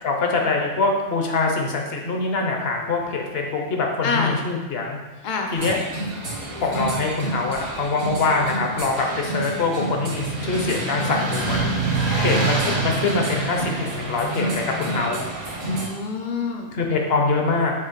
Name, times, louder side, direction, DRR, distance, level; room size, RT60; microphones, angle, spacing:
voice 1, 0.0-5.0 5.5-5.8 6.6-11.6 12.2-15.2 16.7-17.7, left 3 dB, 50° left, 1 dB, 0.9 m, -24 dB
voice 2, 4.0-4.4 5.2-5.8 12.1-12.5 15.7-16.8, left 4 dB, 70° left, 2 dB, 0.4 m, -27 dB
sound 1, 5.5-15.9, right 2 dB, 70° right, 1.7 m, -27 dB
7.3 x 2.9 x 4.4 m, 1.2 s
omnidirectional pair, 1.6 m